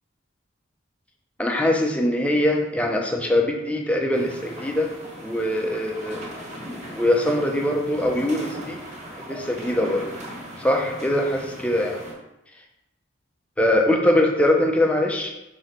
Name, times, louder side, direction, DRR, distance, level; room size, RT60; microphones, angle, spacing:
voice 1, 1.4-4.9 5.2-6.2 7.0-8.8 9.3-10.1 10.6-12.0 13.6-15.3, left 1 dB, 5° left, 1 dB, 0.6 m, -22 dB
sound 1, 4.1-12.1, equal, 35° right, 1.7 m, -38 dB
6.0 x 3.0 x 5.1 m, 0.94 s
head